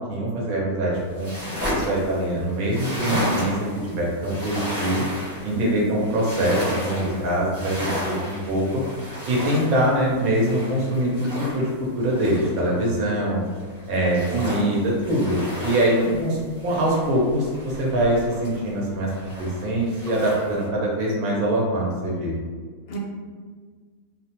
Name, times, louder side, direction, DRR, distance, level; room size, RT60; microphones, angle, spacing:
voice 1, 0.1-1.3 1.7-5.0 5.4-8.8 9.3-13.4 13.9-16.4 16.6-22.3, right 1 dB, 70° right, -3 dB, 1.1 m, -23 dB
sound 1, 0.9-13.1 13.5-18.8 19.1-20.7, equal, 15° right, 0.7 m, -33 dB
voice 2, 5.5-6.0 13.9-14.3 15.9-16.3 22.9-23.0, equal, 85° left, -2 dB, 1.1 m, -31 dB
2.7 x 2.1 x 2.8 m, 1.5 s
omnidirectional pair, 1.6 m